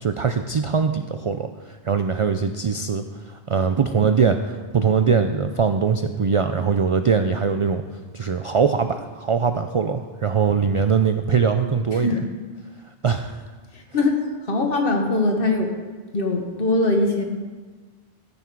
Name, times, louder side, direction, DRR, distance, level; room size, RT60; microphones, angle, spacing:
voice 1, 0.0-7.8 8.1-12.2 13.0-13.4, right 6 dB, 55° right, 8 dB, 0.3 m, -22 dB
voice 2, 11.9-12.3 13.7-14.1 14.5-15.7 16.1-17.2, left 2 dB, 60° left, 3 dB, 1.4 m, -21 dB
14.0 x 5.8 x 4.6 m, 1.4 s
omnidirectional pair, 1.0 m